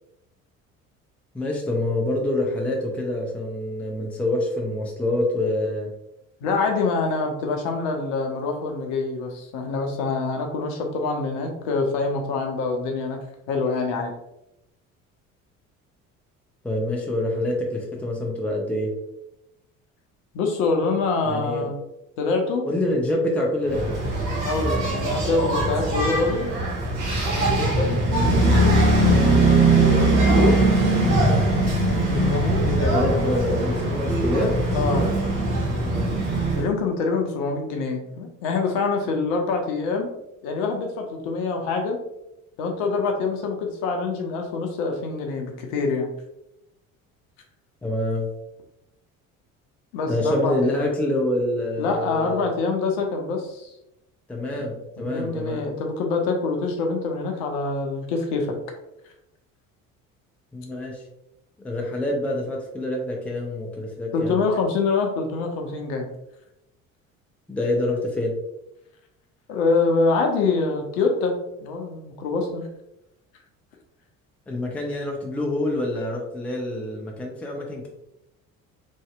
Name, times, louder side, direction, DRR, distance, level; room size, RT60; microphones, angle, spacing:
voice 1, 1.3-5.9 16.6-18.9 21.2-21.7 22.6-24.0 32.9-34.6 35.8-36.1 47.8-48.3 50.1-52.4 54.3-55.7 60.5-61.0 61.6-64.4 67.5-68.4 74.5-77.9, left 1 dB, 5° left, -1 dB, 0.5 m, -26 dB
voice 2, 6.4-13.2 13.5-14.1 20.3-21.7 22.2-22.6 24.4-26.5 27.3-28.0 29.0-30.6 31.8-33.1 34.7-35.1 36.5-40.1 40.4-42.0 42.6-46.1 49.9-50.9 51.8-53.7 54.5-54.6 55.0-58.5 64.1-66.1 69.5-71.3 71.6-72.6, left 4 dB, 55° left, 2 dB, 0.7 m, -25 dB
Engine, 23.7-36.7, right 2 dB, 50° right, 1.0 m, -21 dB
Mallet percussion, 30.2-37.7, right 2 dB, 90° right, 0.7 m, -36 dB
3.1 x 2.7 x 2.3 m, 0.87 s
figure-of-eight pair, 55°, 41 cm